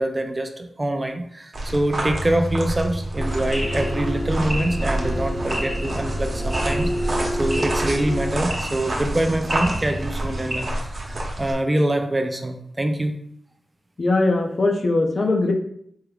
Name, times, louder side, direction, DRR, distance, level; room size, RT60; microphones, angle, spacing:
voice 1, 0.0-13.1, right 1 dB, 25° right, 6 dB, 0.4 m, -25 dB
sound 1, 1.5-11.5, right 1 dB, 55° right, 0.9 m, -29 dB
sound 2, 3.2-8.3, equal, 25° left, 1.4 m, -28 dB
sound 3, 3.5-10.6, equal, 5° right, 0.8 m, -32 dB
voice 2, 14.0-15.5, left 2 dB, 50° left, 2 dB, 0.6 m, -20 dB
4.5 x 3.3 x 2.4 m, 0.69 s
cardioid pair, 75°, 0 cm